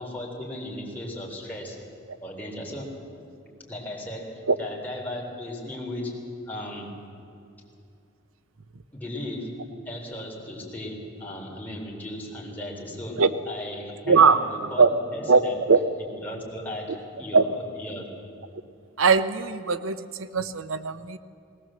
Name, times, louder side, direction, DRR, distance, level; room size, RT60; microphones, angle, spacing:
voice 1, 0.0-1.8 2.2-3.2 3.6-6.2 6.5-6.9 8.9-15.5 16.2-18.1, left 1 dB, 10° left, -3 dB, 3.8 m, -36 dB
voice 2, 14.1-14.4 14.8-14.9 15.3-15.4 15.7-15.8 17.3-17.4 19.0-21.2, right 5 dB, 90° right, 12 dB, 0.7 m, -20 dB
19.5 x 19.0 x 7.7 m, 2.5 s
head